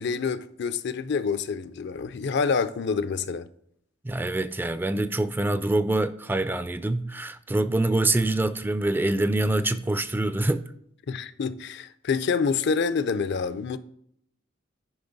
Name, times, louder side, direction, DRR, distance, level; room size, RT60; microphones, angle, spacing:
voice 1, 0.0-3.5 11.1-13.8, left 5 dB, 60° left, 0.5 m, -27 dB
voice 2, 4.0-10.7, right 2 dB, 10° right, 0.3 m, -25 dB
10.5 x 5.1 x 4.0 m
head